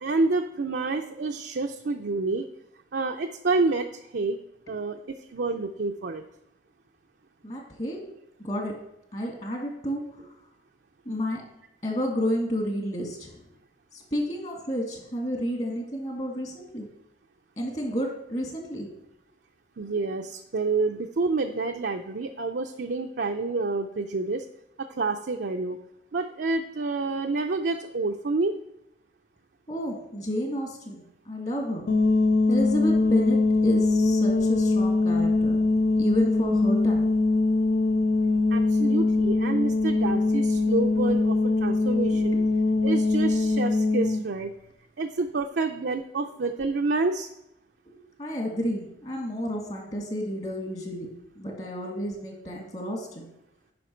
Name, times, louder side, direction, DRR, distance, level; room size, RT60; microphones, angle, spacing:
voice 1, 0.0-2.5 2.9-4.4 4.7-6.2 19.8-24.4 24.8-25.8 26.1-28.6 38.5-42.4 42.8-44.5 45.0-47.3, right 3 dB, 65° right, 3 dB, 0.5 m, -28 dB
voice 2, 7.4-8.0 8.4-8.8 9.1-10.3 11.1-11.4 11.8-13.4 13.9-16.9 17.6-18.9 29.7-31.9 32.5-35.6 36.0-37.1 42.1-42.4 47.8-53.3, equal, 40° left, 1 dB, 1.9 m, -31 dB
sound 1, 31.9-44.2, left 3 dB, 55° left, 0.4 m, -22 dB
9.3 x 5.6 x 4.4 m, 0.83 s
head